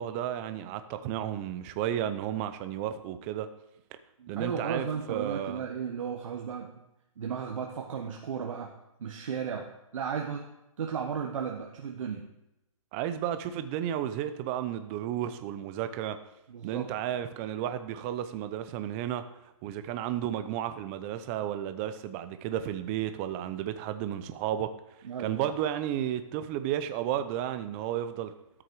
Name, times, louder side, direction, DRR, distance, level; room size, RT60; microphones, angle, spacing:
voice 1, 0.0-3.5 4.3-5.6 12.9-16.2 16.6-19.2 19.6-24.7 25.2-28.3, right 11 dB, 25° right, 10 dB, 0.6 m, -33 dB
voice 2, 4.2-6.8 7.2-8.7 9.0-10.5 10.8-12.3 16.5-16.9 25.0-25.5, right 7 dB, 65° right, 2 dB, 1.3 m, -35 dB
13.5 x 6.3 x 4.7 m, 0.89 s
hypercardioid pair, 155°, 18 cm